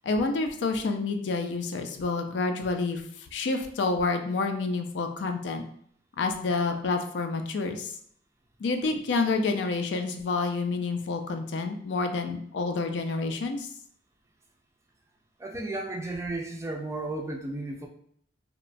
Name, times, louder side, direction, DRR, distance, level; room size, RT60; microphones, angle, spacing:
voice 1, 0.0-3.0 3.3-5.6 6.2-7.9 8.6-13.7, left 3 dB, 75° left, 6 dB, 0.4 m, -28 dB
voice 2, 15.4-17.9, right 2 dB, 15° right, 1 dB, 0.3 m, -34 dB
2.9 x 2.1 x 2.5 m, 0.63 s
head